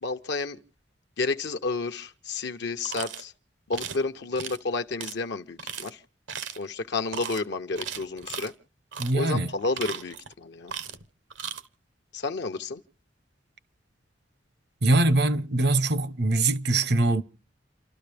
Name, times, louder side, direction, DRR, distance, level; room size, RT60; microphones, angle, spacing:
voice 1, 0.0-0.6 1.2-3.3 3.7-6.0 6.6-8.5 9.1-10.7 12.1-12.8, left 3 dB, 65° left, 0.8 m, -31 dB
sound 1, 2.9-3.2 3.7-4.0 4.4-4.6 5.0-5.1 5.6-5.9 6.3-6.7 7.1-7.4 7.8-8.5 8.9-9.2 9.6-10.3 10.7-11.0 11.3-11.6, right 7 dB, 80° right, 1.1 m, -36 dB
voice 2, 9.0-9.5 14.8-17.2, right 2 dB, 60° right, 0.8 m, -23 dB
29.5 x 12.5 x 3.4 m
head